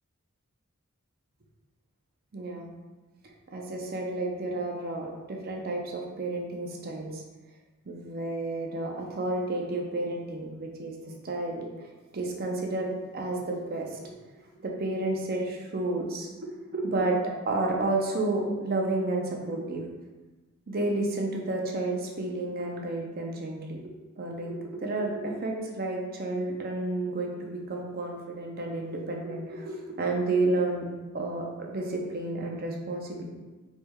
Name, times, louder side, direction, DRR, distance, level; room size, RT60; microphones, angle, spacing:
voice 1, 2.3-2.7 3.5-7.2 7.9-11.0 11.2-14.2 14.6-17.2 17.4-19.9 20.7-23.8 24.2-30.8 31.1-33.2, right 2 dB, 45° right, 0 dB, 0.6 m, -31 dB
4.5 x 3.3 x 2.2 m, 1.2 s
head